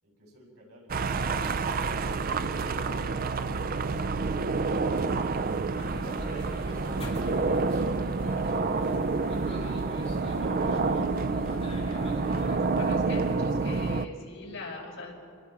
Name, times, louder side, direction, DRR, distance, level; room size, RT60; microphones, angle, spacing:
voice 1, 0.0-1.9, equal, 85° right, -2 dB, 7.5 m, -53 dB
sound 1, 0.9-14.0, right 4 dB, 40° right, 0.5 m, -28 dB
sound 2, 5.8-13.4, equal, 30° left, 2.7 m, -43 dB
voice 2, 12.8-15.1, left 2 dB, 65° left, -3 dB, 5.3 m, -41 dB
28.0 x 21.0 x 4.8 m, 2.1 s
head